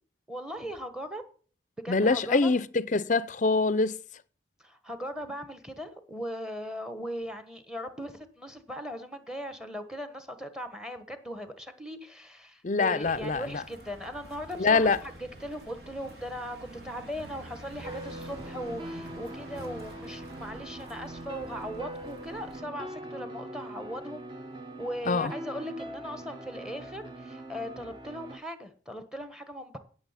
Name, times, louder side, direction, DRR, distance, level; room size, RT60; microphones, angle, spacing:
voice 1, 0.3-1.2 1.8-2.5 4.6-24.3 24.8-29.8, equal, 5° right, 1.2 m, -39 dB
voice 2, 1.9-4.0 12.6-13.4 14.6-15.0 25.1-25.3, left 3 dB, 40° left, 0.5 m, -24 dB
sound 1, 13.0-22.6, right 1 dB, 60° right, 3.5 m, -48 dB
sound 2, 17.8-28.4, right 1 dB, 25° right, 1.0 m, -42 dB
16.5 x 6.5 x 5.7 m
head